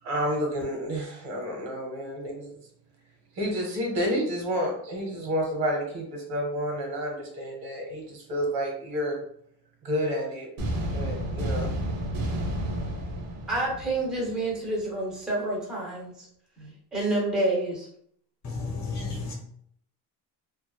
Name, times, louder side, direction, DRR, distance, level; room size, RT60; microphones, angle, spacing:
voice 1, 0.0-2.5 3.4-9.2 9.8-10.5 10.9-11.7, equal, 85° right, 1.1 m, -30 dB
sound 1, 10.6-14.5, right 1 dB, 65° right, 0.7 m, -31 dB
voice 2, 13.5-16.3 16.6-17.9, right 2 dB, ahead, 0.4 m, -28 dB
voice 3, 18.4-19.3, left 3 dB, 45° left, 0.8 m, -32 dB
2.5 x 2.4 x 2.3 m
cardioid pair, 160°, 38 cm